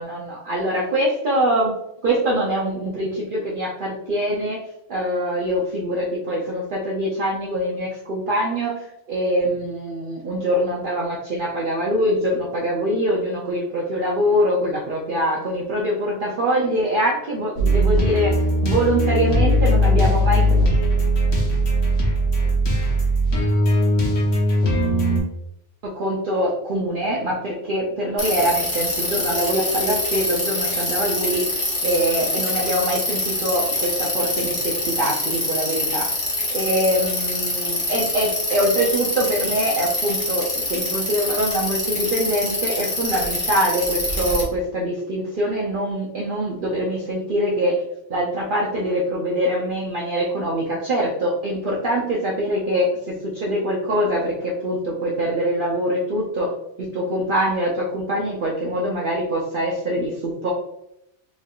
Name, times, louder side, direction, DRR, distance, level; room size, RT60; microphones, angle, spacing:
voice 1, 0.0-1.8 2.0-4.6 4.9-20.5 25.8-31.4 31.8-36.1 36.5-47.8 48.1-56.5 56.8-60.5, equal, 50° right, -4 dB, 0.8 m, -23 dB
sound 1, 17.6-25.2, equal, 85° left, 1.4 m, -19 dB
Bicycle, 28.2-44.4, left 1 dB, 30° left, 1.3 m, -25 dB
4.4 x 3.5 x 2.4 m, 0.81 s
omnidirectional pair, 1.2 m